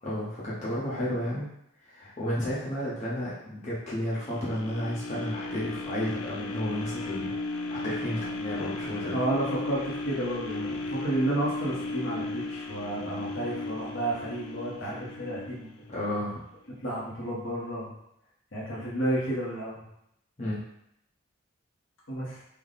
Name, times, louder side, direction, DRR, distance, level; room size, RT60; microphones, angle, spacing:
voice 1, 0.0-1.5 1.8-7.3 7.7-9.2 15.9-16.3 20.4-20.6, left 1 dB, 35° left, -8 dB, 0.8 m, -32 dB
sound 1, 4.1-16.2 16.7-16.8, left 2 dB, 90° left, 0.4 m, -35 dB
voice 2, 9.1-15.8 16.8-17.9 18.5-19.8 22.1-22.4, right 1 dB, 60° left, -5 dB, 1.0 m, -31 dB
3.4 x 2.1 x 3.9 m, 0.78 s
head